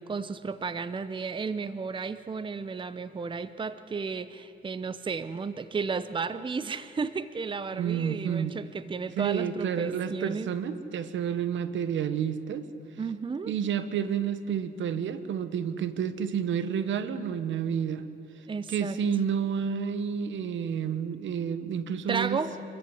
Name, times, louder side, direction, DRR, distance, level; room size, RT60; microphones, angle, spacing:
voice 1, 0.1-10.5 13.0-13.5 18.5-19.0 22.1-22.5, right 5 dB, 25° right, 14 dB, 0.8 m, -33 dB
voice 2, 7.7-8.6 9.2-12.7 13.5-18.1 18.7-22.4, right 8 dB, 70° right, 12 dB, 1.3 m, -30 dB
26.0 x 14.0 x 10.0 m, 2.9 s
cardioid pair, 90°, 20 cm